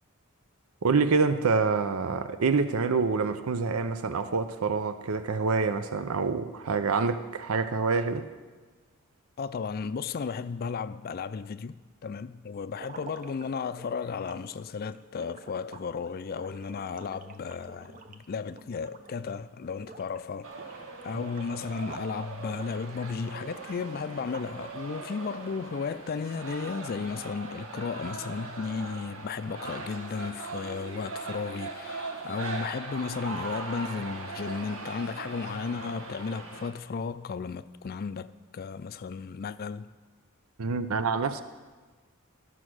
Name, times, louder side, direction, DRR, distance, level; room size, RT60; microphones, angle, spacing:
voice 1, 0.8-8.3 40.6-41.4, right 4 dB, 85° right, 0.6 m, -26 dB
voice 2, 9.4-39.9, left 5 dB, 45° left, 0.4 m, -34 dB
sound 1, 12.7-19.4 19.7-20.2 20.5-22.1 22.5-24.7, right 3 dB, 40° right, 0.7 m, -49 dB
sound 2, 20.4-36.7, right 3 dB, 70° right, 1.3 m, -40 dB
13.5 x 6.2 x 6.2 m
head